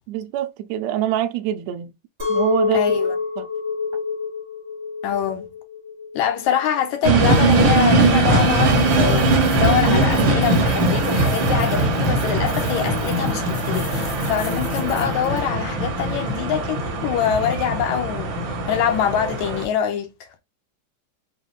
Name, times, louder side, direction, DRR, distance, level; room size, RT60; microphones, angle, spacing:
voice 1, 0.1-1.9 2.3-2.8 3.4-3.5, right 11 dB, 85° right, 1.5 m, -25 dB
Chink clink, 2.2-7.4, left 5 dB, 45° right, 0.8 m, -26 dB
voice 2, 2.7-3.2 5.0-5.5 6.2-20.3, left 9 dB, 80° left, 1.8 m, -24 dB
sound 1, 7.0-19.6, right 2 dB, 70° right, 1.1 m, -20 dB
sound 2, 7.2-15.5, left 4 dB, 60° left, 2.9 m, -42 dB
5.6 x 2.3 x 3.1 m
omnidirectional pair, 3.6 m